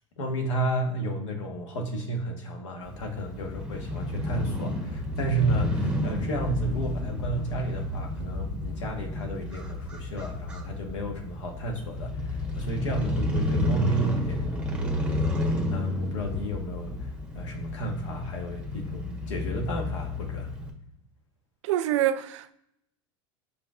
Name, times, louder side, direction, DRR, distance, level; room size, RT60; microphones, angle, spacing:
voice 1, 0.2-20.5, right 2 dB, 85° left, 1.2 m, -32 dB
Crow / Motorcycle, 2.8-20.7, left 1 dB, 5° right, 1.2 m, -31 dB
voice 2, 21.6-22.5, right 12 dB, 75° right, 0.4 m, -26 dB
5.2 x 4.2 x 2.4 m
hypercardioid pair, 90°, 15 cm